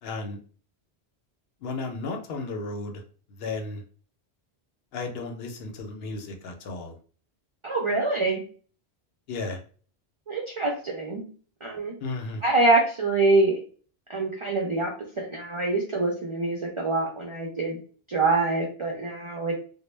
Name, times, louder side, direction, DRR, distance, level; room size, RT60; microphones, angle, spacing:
voice 1, 0.0-0.4 1.6-3.0 3.3-3.8 4.9-7.0 9.3-9.6 12.0-12.4, left 3 dB, 70° left, 4 dB, 0.8 m, -34 dB
voice 2, 7.6-8.4 10.3-11.2 11.6-11.9 12.4-13.6 14.1-17.8 18.1-19.6, right 2 dB, 55° right, -2 dB, 0.3 m, -25 dB
2.1 x 2.0 x 3.1 m, 0.41 s
omnidirectional pair, 1.1 m